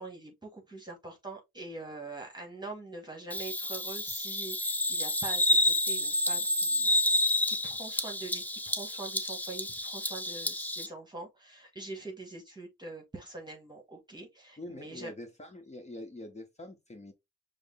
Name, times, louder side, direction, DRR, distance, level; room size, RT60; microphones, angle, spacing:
voice 1, 0.0-15.1, right 2 dB, 15° right, 1.2 m, -44 dB
Bird vocalization bird call bird song, 3.3-10.9, left 1 dB, 5° left, 0.4 m, -29 dB
voice 2, 14.6-17.1, left 1 dB, 20° left, 1.0 m, -44 dB
4.9 x 2.0 x 3.6 m
cardioid pair, 90°, 30 cm